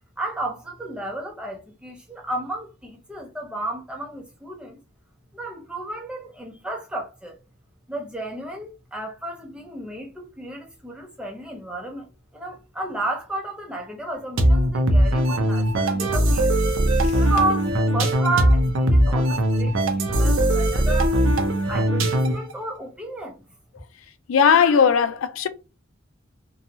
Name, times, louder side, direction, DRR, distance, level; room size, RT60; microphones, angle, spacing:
voice 1, 0.2-4.8 5.3-7.4 7.9-12.1 12.3-16.5 17.2-21.2 21.7-23.4, right 2 dB, 5° right, 0.6 m, -32 dB
sound 1, 14.4-22.5, right 1 dB, 85° right, 0.6 m, -20 dB
voice 2, 24.3-25.5, left 6 dB, 90° left, 0.4 m, -17 dB
2.8 x 2.3 x 2.6 m
head